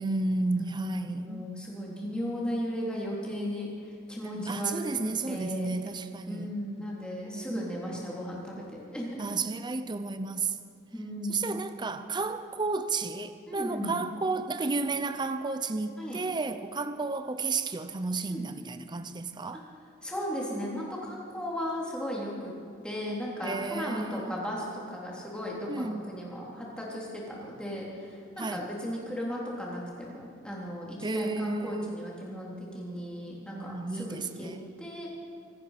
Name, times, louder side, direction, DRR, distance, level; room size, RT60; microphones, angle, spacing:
voice 1, 0.0-1.5 4.2-6.5 7.3-8.1 9.2-10.6 11.3-19.6 23.4-24.4 25.7-26.0 28.4-28.6 31.0-32.0 33.3-34.6, right 3 dB, 20° right, 10 dB, 0.6 m, -32 dB
voice 2, 0.6-3.7 4.1-5.7 6.3-9.2 10.9-11.4 13.5-13.9 16.0-16.2 18.3-18.5 20.0-22.5 22.8-34.5 34.8-35.2, equal, 5° left, -4 dB, 3.4 m, -36 dB
25.5 x 9.8 x 5.8 m, 2.3 s
head